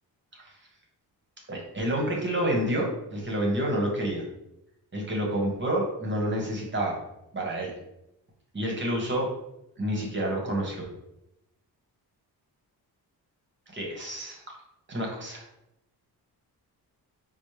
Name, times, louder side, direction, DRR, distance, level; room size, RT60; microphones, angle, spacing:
voice 1, 1.5-4.2 4.9-7.0 7.3-7.7 8.5-9.3 9.8-10.8 13.7-14.4 14.9-15.5, right 1 dB, 30° right, -1 dB, 1.0 m, -29 dB
4.2 x 2.0 x 3.2 m, 0.85 s
cardioid pair, 85°, 39 cm